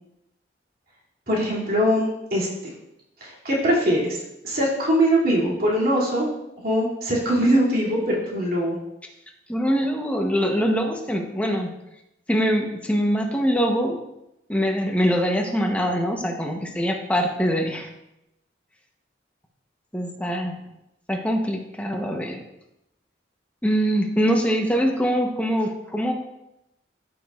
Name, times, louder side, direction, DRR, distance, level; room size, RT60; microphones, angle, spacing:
voice 1, 1.3-2.5 3.2-6.3 6.6-8.8, equal, 55° right, -6 dB, 2.6 m, -22 dB
voice 2, 9.5-11.7 12.3-14.0 14.5-17.9 19.9-20.6 21.1-22.4 23.6-26.1, equal, 5° left, 2 dB, 0.9 m, -23 dB
14.5 x 6.1 x 2.4 m, 0.87 s
head